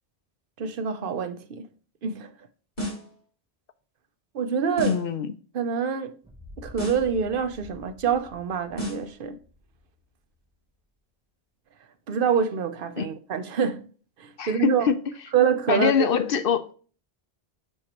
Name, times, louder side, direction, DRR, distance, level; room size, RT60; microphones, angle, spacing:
voice 1, 0.6-1.7 2.0-2.3 4.3-5.0 5.5-6.2 6.6-9.4 12.1-13.9 14.2-14.9 15.3-16.0, right 7 dB, 60° right, 0.9 m, -26 dB
sound 1, 2.8-3.2 4.8-5.2 6.8-7.2 8.8-9.2, equal, 50° left, 3.7 m, -33 dB
voice 2, 4.9-5.3 13.0-13.1 14.4-15.0 15.7-16.7, left 7 dB, 65° left, 0.8 m, -23 dB
sound 2, 6.2-10.1, left 2 dB, 5° right, 1.0 m, -48 dB
6.4 x 6.3 x 2.9 m
omnidirectional pair, 1.1 m